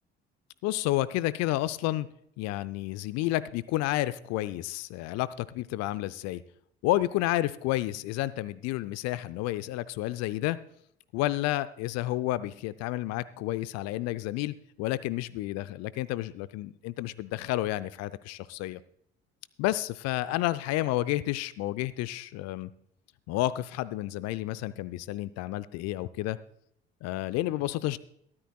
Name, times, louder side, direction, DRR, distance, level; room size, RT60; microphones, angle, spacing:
voice 1, 0.6-2.1 2.4-6.4 6.8-10.6 11.1-18.8 19.6-22.7 23.3-26.4 27.0-28.0, left 16 dB, 55° left, 16 dB, 0.6 m, -30 dB
23.0 x 8.7 x 2.3 m, 0.72 s
figure-of-eight pair, 50°, 32 cm